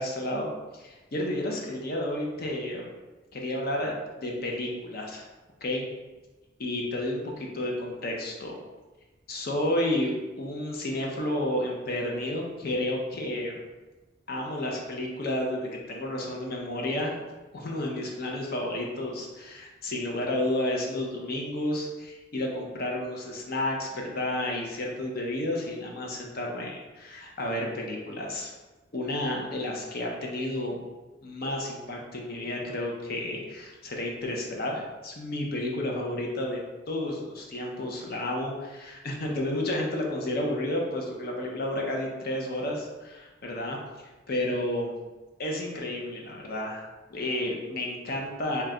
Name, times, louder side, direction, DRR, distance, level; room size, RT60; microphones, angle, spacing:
voice 1, 0.0-2.9 3.3-5.2 5.6-5.9 6.6-8.6 9.3-13.6 14.3-17.1 17.5-28.5 28.9-30.8 31.2-36.6 36.9-43.8 44.3-44.9 45.4-46.8 47.1-48.6, left 1 dB, 55° left, 0 dB, 0.6 m, -31 dB
3.0 x 2.2 x 3.6 m, 1.2 s
head